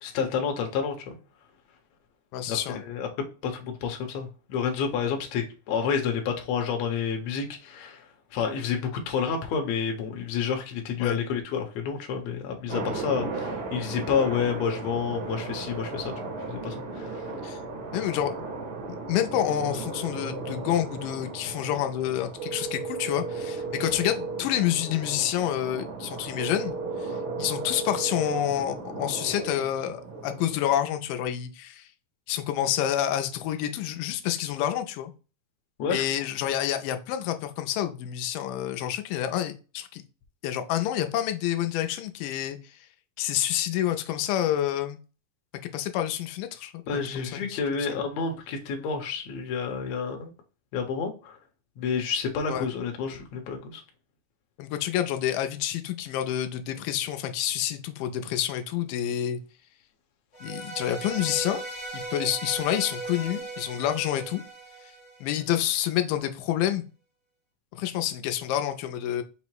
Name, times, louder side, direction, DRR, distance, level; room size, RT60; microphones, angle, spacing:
voice 1, 0.0-1.2 2.5-3.1 3.4-16.1 16.5-17.3 35.8-36.0 46.9-50.3 50.7-51.4 51.8-53.8, left 6 dB, 70° left, 1.8 m, -29 dB
voice 2, 2.3-2.8 11.0-11.2 17.4-17.6 17.9-18.4 18.9-31.9 32.3-35.1 35.9-40.0 40.4-42.6 43.2-45.0 45.6-47.6 47.9-48.0 52.5-52.7 54.6-59.4 60.4-61.6 61.9-64.4 65.2-66.8 67.7-69.2, left 11 dB, 90° left, 2.2 m, -28 dB
sound 1, 12.7-30.8, right 3 dB, 55° right, 1.4 m, -37 dB
sound 2, 22.4-24.4 26.4-28.4, right 4 dB, 85° right, 2.3 m, -34 dB
sound 3, 60.3-65.6, right 3 dB, 35° left, 0.6 m, -37 dB
5.6 x 2.0 x 4.5 m
omnidirectional pair, 3.8 m